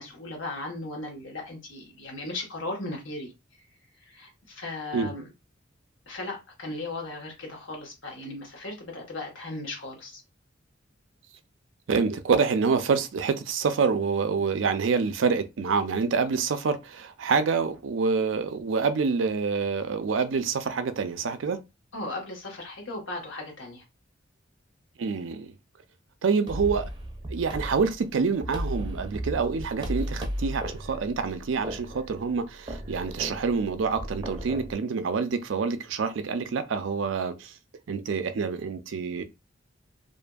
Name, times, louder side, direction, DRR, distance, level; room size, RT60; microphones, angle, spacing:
voice 1, 0.0-3.3 4.0-5.3 6.1-10.2 21.9-23.8, left 2 dB, 75° left, 1.2 m, -37 dB
voice 2, 11.9-21.6 25.0-25.5 26.2-26.9 27.3-37.5 37.9-39.2, right 5 dB, 70° right, 0.4 m, -27 dB
sound 1, 26.5-34.7, equal, 25° right, 0.5 m, -35 dB
2.7 x 2.5 x 2.2 m
head